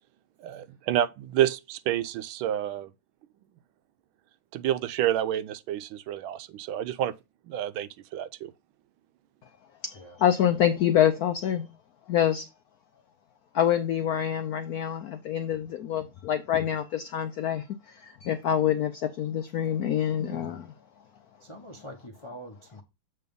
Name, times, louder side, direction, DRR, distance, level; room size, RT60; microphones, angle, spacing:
voice 1, 0.4-2.9 4.5-7.1 7.4-8.5, right 11 dB, 90° right, 1.4 m, -29 dB
voice 2, 9.8-11.7 12.1-12.5 13.5-20.6, left 10 dB, 80° left, 0.8 m, -26 dB
voice 3, 20.2-20.7 21.4-22.8, left 1 dB, 35° left, 0.5 m, -44 dB
7.6 x 3.3 x 5.2 m
omnidirectional pair, 2.2 m